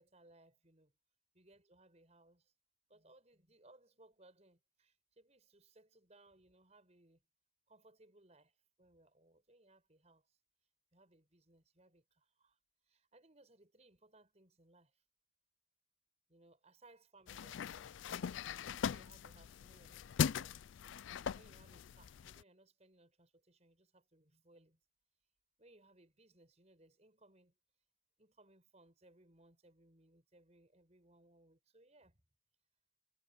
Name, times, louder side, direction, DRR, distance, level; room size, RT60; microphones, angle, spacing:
voice 1, 0.0-0.9 1.3-2.5 2.9-7.2 7.7-10.4 10.9-12.6 12.9-15.0 16.3-18.4 18.9-20.8 21.3-24.8 25.6-27.6 28.2-32.2, right 2 dB, 35° right, 5.8 m, -66 dB
sound 1, 17.3-22.4, left 7 dB, 70° left, 0.4 m, -40 dB
head